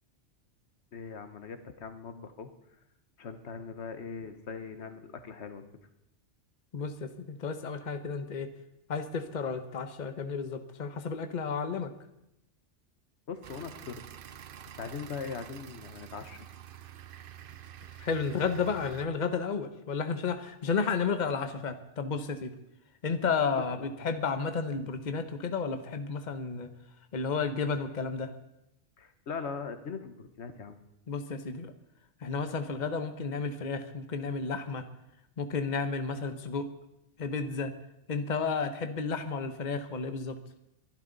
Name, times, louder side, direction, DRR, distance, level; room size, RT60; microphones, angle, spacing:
voice 1, 0.9-2.5 3.2-5.6 13.3-14.0 14.3-14.4 14.8-16.4 23.5-23.9 29.0-30.8, left 5 dB, 65° left, 9 dB, 1.4 m, -40 dB
voice 2, 6.7-8.5 8.9-11.9 18.0-22.5 23.0-26.7 27.1-28.3 31.1-31.7 32.2-34.9 35.4-36.7 37.2-37.7 38.1-40.4, left 5 dB, 40° left, 8 dB, 1.1 m, -32 dB
sound 1, 13.4-19.1, right 10 dB, 55° right, 0.7 m, -48 dB
23.0 x 12.0 x 4.0 m, 0.85 s
omnidirectional pair, 1.2 m